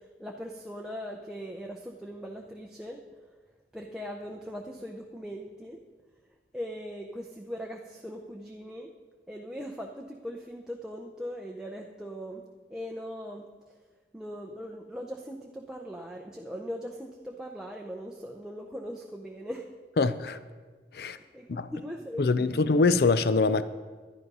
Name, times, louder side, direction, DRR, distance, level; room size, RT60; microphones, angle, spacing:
voice 1, 0.2-3.0 3.7-5.8 6.5-8.9 9.3-12.4 12.7-13.5 14.1-19.7 21.0-22.7, equal, 5° right, 0.6 m, -40 dB
voice 2, 20.0-20.4 20.9-21.2 21.5-21.7 22.2-23.6, left 3 dB, 60° left, 0.5 m, -24 dB
11.0 x 10.5 x 5.5 m
head